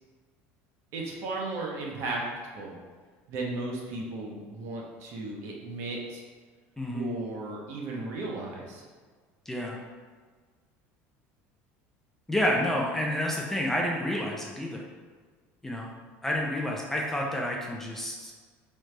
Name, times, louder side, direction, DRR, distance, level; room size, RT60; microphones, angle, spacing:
voice 1, 0.9-2.2 2.5-2.8 3.3-6.2 6.9-8.8, right 2 dB, 55° right, -1 dB, 0.8 m, -35 dB
voice 2, 6.8-7.1 9.5-9.8 12.3-14.8 15.6-15.9 16.2-18.3, left 1 dB, 5° left, -2 dB, 0.3 m, -29 dB
3.8 x 3.2 x 3.3 m, 1.5 s
cardioid pair, 165°, 6 cm